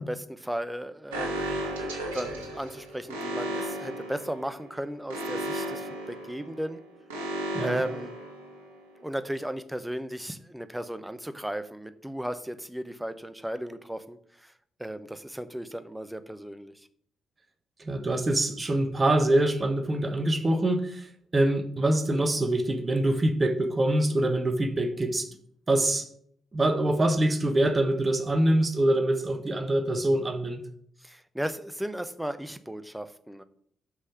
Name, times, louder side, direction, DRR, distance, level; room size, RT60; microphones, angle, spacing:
voice 1, 0.0-1.5 2.1-6.8 7.6-8.1 9.0-14.5 14.8-16.7 31.0-33.4, right 1 dB, 5° right, 11 dB, 0.8 m, -35 dB
Alarm, 1.1-8.9, right 1 dB, 75° right, 1.2 m, -35 dB
voice 2, 17.8-21.1 21.3-25.3 25.7-26.1 26.5-30.6, right 1 dB, 30° right, 7 dB, 1.3 m, -24 dB
6.4 x 5.7 x 6.4 m, 0.64 s
figure-of-eight pair, 40°, 0 cm